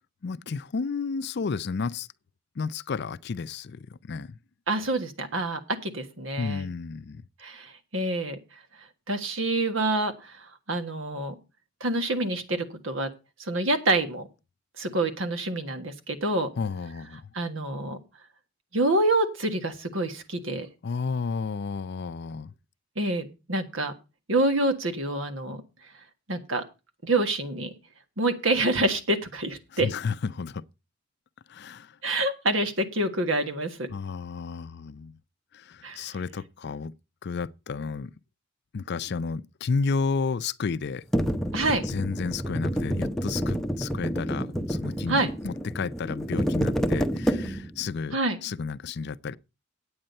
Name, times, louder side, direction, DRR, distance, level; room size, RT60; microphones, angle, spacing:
voice 1, 0.2-2.1 2.6-4.4 6.4-7.2 16.6-17.3 20.8-22.5 29.7-30.6 31.5-32.0 33.9-35.2 35.5-36.9 37.2-38.1 38.7-41.0 41.8-49.4, left 5 dB, 60° left, 0.5 m, -32 dB
voice 2, 4.7-6.7 7.4-8.4 9.1-11.3 11.8-13.1 13.4-14.3 14.8-16.5 17.3-18.0 18.7-20.7 22.9-23.9 24.3-25.6 26.3-26.6 27.0-27.7 28.2-29.9 32.0-33.9 35.8-36.1 41.5-41.8 45.1-45.3 48.1-48.4, right 2 dB, 85° right, 1.6 m, -27 dB
sound 1, 41.1-47.8, equal, ahead, 0.7 m, -28 dB
8.9 x 8.8 x 5.4 m
head